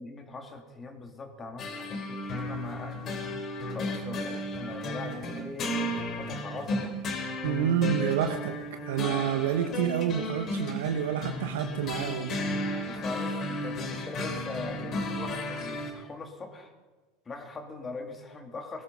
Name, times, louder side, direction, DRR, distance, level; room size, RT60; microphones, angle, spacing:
voice 1, 0.0-3.1 3.7-6.9 12.8-16.7 17.3-18.8, left 3 dB, 25° left, 4 dB, 2.6 m, -41 dB
sound 1, 1.6-15.9, left 1 dB, 45° left, 3.2 m, -34 dB
voice 2, 7.4-12.8, right 9 dB, 75° right, 7 dB, 0.9 m, -29 dB
20.0 x 13.0 x 5.4 m, 1.3 s
hypercardioid pair, 85°, 0 cm